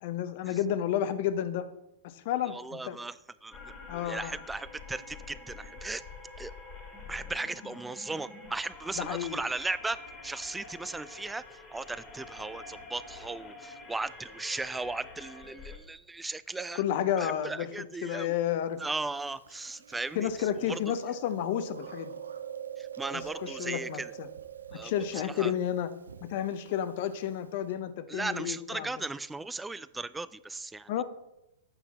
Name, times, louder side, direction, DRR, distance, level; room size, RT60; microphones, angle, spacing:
voice 1, 0.0-1.7 2.0-3.0 3.9-4.3 9.0-9.4 16.7-17.7 18.0-18.8 20.1-22.2 23.1-24.3 24.7-25.9 26.2-28.9 30.9-31.0, left 10 dB, 55° left, 12 dB, 0.7 m, -31 dB
voice 2, 2.4-3.1 3.4-6.0 6.4-6.5 7.1-11.4 11.7-16.8 17.2-18.3 18.8-20.3 20.7-20.8 22.8-24.1 24.7-24.9 25.4-25.5 28.1-31.0, right 3 dB, 10° right, 17 dB, 0.3 m, -37 dB
sound 1, 3.5-15.8, left 3 dB, 25° left, 1.7 m, -47 dB
Chewing mastication, 18.8-27.7, right 9 dB, 85° right, 0.5 m, -45 dB
8.1 x 5.6 x 4.1 m, 0.89 s
hypercardioid pair, 110°, 0 cm